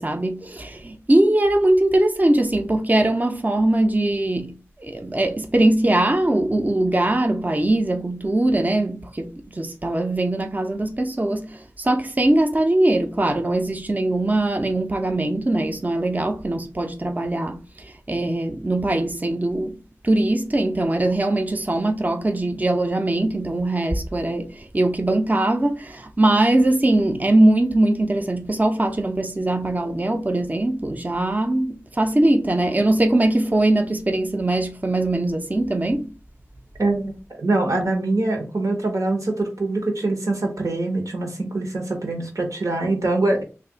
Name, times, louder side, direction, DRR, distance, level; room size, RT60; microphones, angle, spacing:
voice 1, 0.0-19.8 20.0-36.1, right 1 dB, 30° right, 0.5 m, -21 dB
voice 2, 36.8-43.4, right 2 dB, 90° right, 0.9 m, -24 dB
2.7 x 2.4 x 3.8 m
wide cardioid pair, 50°, 5 cm